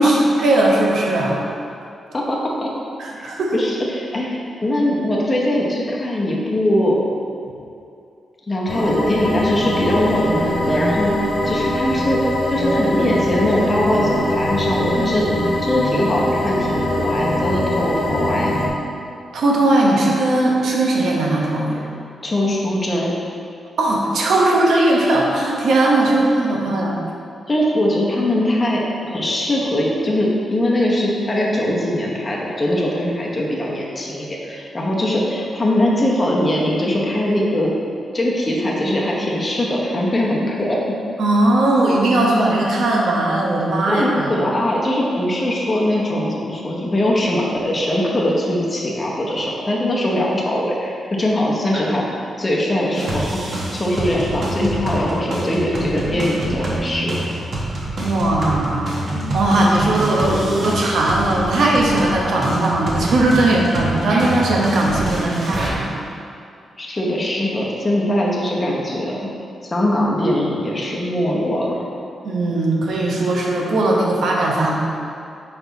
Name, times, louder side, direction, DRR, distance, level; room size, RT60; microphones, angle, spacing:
voice 1, 0.0-1.4 3.0-3.5 19.3-21.8 23.8-27.0 41.2-44.3 51.7-51.8 57.8-59.0 59.3-65.9 72.2-74.7, right 2 dB, 75° right, -2 dB, 1.0 m, -18 dB
voice 2, 2.1-2.7 3.2-7.0 8.5-12.2 12.5-15.3 15.6-18.7 22.2-23.1 27.5-37.7 38.1-40.8 43.9-52.0 52.4-57.4 66.8-69.3 69.6-71.8, left 1 dB, 25° left, -3 dB, 0.8 m, -21 dB
sound 1, 8.7-18.7, left 1 dB, 70° left, 1.3 m, -22 dB
sound 2, 52.9-65.7, right 1 dB, 55° right, 1.2 m, -26 dB
5.5 x 4.6 x 4.0 m, 2.5 s
wide cardioid pair, 120°, 0 cm